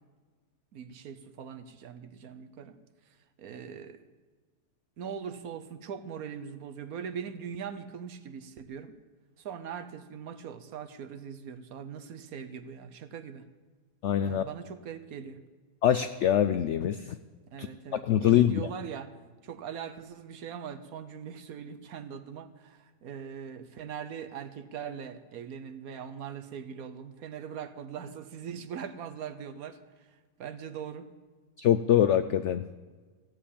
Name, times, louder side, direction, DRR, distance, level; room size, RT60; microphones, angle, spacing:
voice 1, 0.7-2.7 3.4-4.1 5.0-8.9 9.4-13.4 14.2-15.4 17.5-19.1 19.4-29.8 30.4-31.1, right 7 dB, 65° right, 10 dB, 1.2 m, -41 dB
voice 2, 14.0-14.4 15.8-17.2 17.6-17.7 18.1-18.7 31.6-32.7, left 10 dB, 85° left, 11 dB, 0.6 m, -24 dB
14.5 x 7.6 x 8.5 m, 1.4 s
omnidirectional pair, 1.8 m